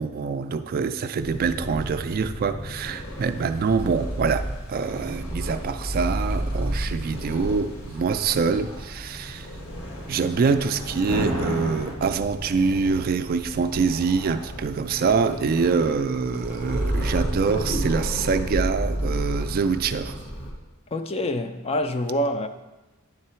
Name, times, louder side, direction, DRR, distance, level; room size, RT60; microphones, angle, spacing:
voice 1, 0.0-9.5 10.1-20.2, right 5 dB, 45° right, 0.3 m, -25 dB
Purr, 1.2-20.5, right 1 dB, 60° left, 1.5 m, -32 dB
sound 1, 2.8-12.0, equal, 80° left, 1.4 m, -36 dB
voice 2, 20.9-22.5, left 1 dB, 30° left, 0.4 m, -26 dB
9.9 x 3.8 x 4.4 m
head